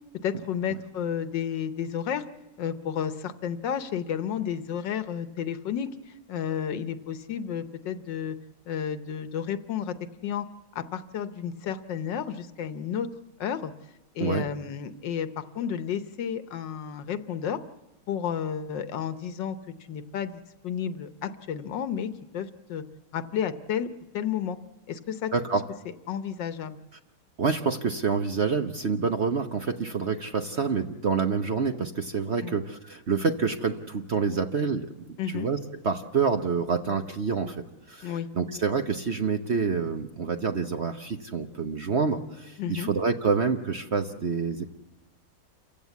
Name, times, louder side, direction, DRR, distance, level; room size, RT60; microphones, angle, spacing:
voice 1, 0.2-2.2 2.6-5.9 6.3-8.4 8.7-9.9 10.2-10.5 10.7-13.1 13.4-13.7 14.1-17.6 18.1-19.6 19.9-22.8 23.1-23.9 24.1-24.6 24.9-25.6 26.1-26.8 32.4-32.6 35.2-35.5 38.0-38.3 42.6-42.9, left 8 dB, 75° left, 11 dB, 1.6 m, -31 dB
voice 2, 25.3-25.6 27.4-35.6 35.8-44.7, right 5 dB, 45° right, 6 dB, 1.0 m, -27 dB
28.5 x 15.5 x 8.3 m, 1.1 s
omnidirectional pair, 2.0 m